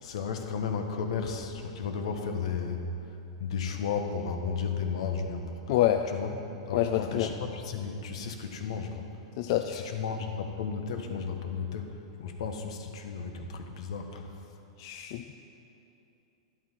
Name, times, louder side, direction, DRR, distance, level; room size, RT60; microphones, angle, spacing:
voice 1, 0.0-2.9 3.4-5.7 6.1-9.1 9.7-14.2, left 5 dB, 75° left, 5 dB, 1.4 m, -34 dB
voice 2, 5.7-6.0 6.7-7.3 9.4-9.9 14.8-15.2, left 12 dB, 50° left, 6 dB, 0.5 m, -27 dB
12.0 x 11.5 x 4.6 m, 2.8 s
supercardioid pair, 150°, 3 cm